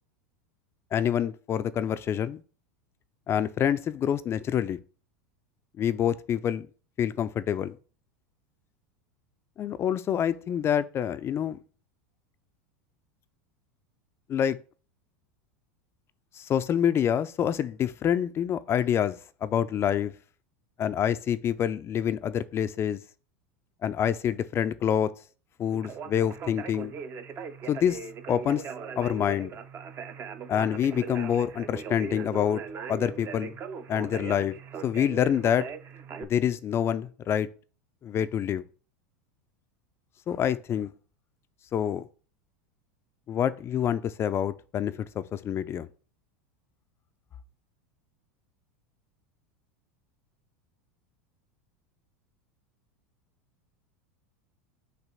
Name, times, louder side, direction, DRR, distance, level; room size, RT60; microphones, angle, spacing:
voice 1, 0.9-2.4 3.3-4.8 5.8-6.7 7.0-7.7 9.6-11.6 14.3-14.6 16.4-20.1 20.8-23.0 23.8-25.1 25.6-26.9 27.7-28.0 28.3-28.6 29.0-29.5 30.5-32.6 32.9-33.5 33.9-34.5 34.8-35.7 36.2-37.5 38.0-38.6 40.3-40.9 41.7-42.1 43.3-45.9, left 9 dB, 30° left, 0.4 m, -27 dB
Conversation, 25.7-36.2, right 6 dB, 30° right, 0.6 m, -39 dB
5.9 x 3.0 x 5.6 m
hypercardioid pair, 110°, 8 cm